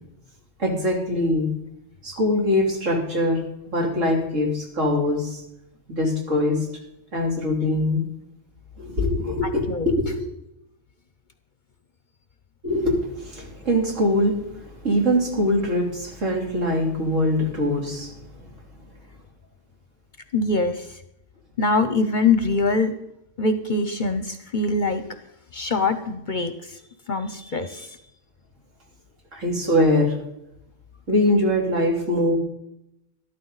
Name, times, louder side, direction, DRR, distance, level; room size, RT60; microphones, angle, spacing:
voice 1, 0.6-1.5 2.0-3.4 3.7-5.4 5.9-6.6 7.1-8.0 8.8-10.3 12.6-14.4 14.8-18.1 29.3-30.1 31.1-32.4, left 1 dB, 75° right, -1 dB, 3.3 m, -22 dB
voice 2, 9.4-9.9 20.3-21.0 21.6-22.9 23.4-25.0 25.5-26.8 27.1-28.0, left 3 dB, 45° left, 10 dB, 0.8 m, -23 dB
13.0 x 12.0 x 4.0 m, 0.81 s
omnidirectional pair, 1.3 m